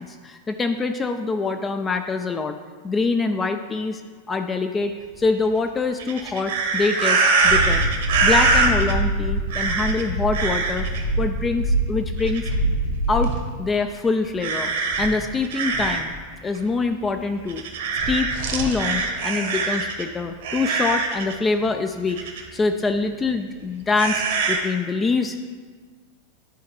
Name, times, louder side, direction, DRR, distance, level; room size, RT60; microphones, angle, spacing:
voice 1, 0.0-2.6 2.8-4.0 4.3-10.9 11.2-12.5 13.1-13.3 13.6-14.7 15.0-16.1 16.4-17.6 18.1-25.4, left 4 dB, 15° left, 6 dB, 0.4 m, -25 dB
sound 1, 6.0-8.9 9.5-10.0 10.3-11.0 12.2-12.7 13.2-13.4 14.4-16.1 16.5-16.6 17.5-20.0 20.4-21.3 22.1-22.4 24.0-24.6, right 4 dB, 55° right, 1.1 m, -23 dB
sound 2, 7.4-13.4, right 1 dB, 60° left, 1.4 m, -25 dB
11.0 x 4.6 x 3.6 m, 1.5 s
figure-of-eight pair, 90°, 0 cm